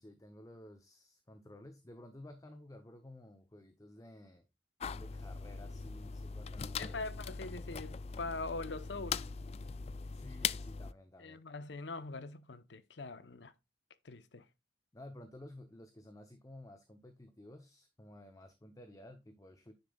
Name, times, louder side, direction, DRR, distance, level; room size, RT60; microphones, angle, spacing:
voice 1, 0.0-4.5 4.9-7.2 10.1-11.4 14.9-19.7, left 1 dB, 20° left, 0.7 m, -54 dB
sound 1, 4.8-10.9, left 6 dB, 35° left, 0.3 m, -40 dB
voice 2, 6.8-9.2 11.2-13.5 14.0-14.4, left 3 dB, 85° left, 0.8 m, -43 dB
9.8 x 6.7 x 2.3 m
head